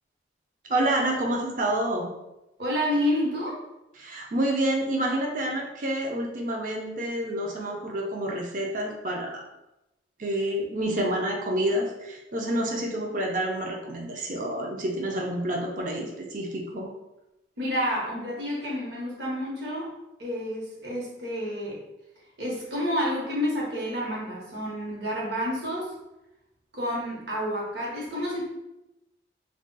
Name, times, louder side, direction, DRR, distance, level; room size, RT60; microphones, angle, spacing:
voice 1, 0.7-2.1 4.0-9.4 10.2-16.9, right 1 dB, 45° right, 0 dB, 0.5 m, -28 dB
voice 2, 2.6-3.6 17.6-19.9 20.2-21.8 22.4-25.9 26.7-28.4, equal, 70° right, -4 dB, 1.0 m, -29 dB
2.3 x 2.2 x 3.8 m, 0.94 s
head